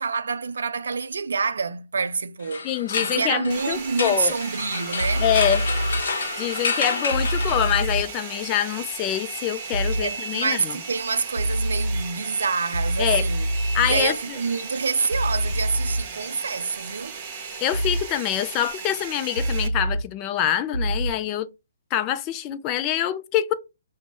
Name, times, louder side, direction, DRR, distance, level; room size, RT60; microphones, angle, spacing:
voice 1, 0.0-2.7 3.0-5.2 10.0-13.5 13.8-17.2, right 5 dB, 65° right, 0.4 m, -27 dB
sound 1, 2.4-8.1, left 4 dB, 55° left, 0.8 m, -29 dB
voice 2, 2.6-4.4 5.2-5.7 6.4-10.8 13.0-13.2 13.7-14.1 17.6-21.5 21.9-23.5, left 11 dB, 25° left, 0.4 m, -25 dB
Domestic sounds home sounds, 3.5-19.7, right 5 dB, 30° right, 0.8 m, -36 dB
sound 2, 5.0-6.0 7.1-8.0 9.7-10.0 11.4-12.0 12.7-14.0 15.1-16.0 17.7-18.0 19.4-20.0 20.7-21.1, right 1 dB, 85° left, 0.6 m, -25 dB
5.8 x 2.1 x 3.5 m
figure-of-eight pair, 130°, 0 cm